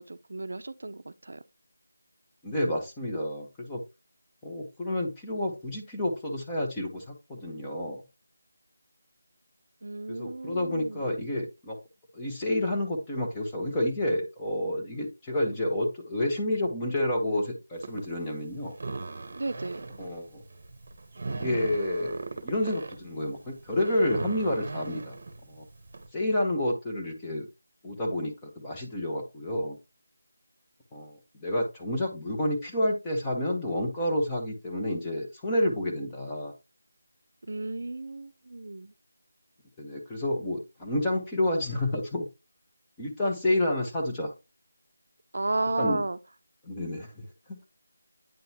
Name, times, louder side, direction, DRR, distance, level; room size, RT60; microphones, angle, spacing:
voice 1, 0.0-1.4 9.8-11.1 19.3-19.9 37.4-38.9 45.3-46.2, right 2 dB, 65° right, 0.5 m, -33 dB
voice 2, 2.4-3.8 4.4-8.0 10.1-11.8 12.1-18.8 20.0-20.4 21.3-22.2 22.4-25.2 25.5-25.6 26.1-27.5 27.8-29.8 30.9-36.5 39.8-42.3 43.0-44.3 45.8-46.0 46.6-47.3, left 1 dB, 10° left, 1.0 m, -29 dB
sound 1, 17.7-26.1, right 3 dB, 45° right, 0.9 m, -39 dB
9.1 x 3.8 x 2.8 m
figure-of-eight pair, 175°, 0 cm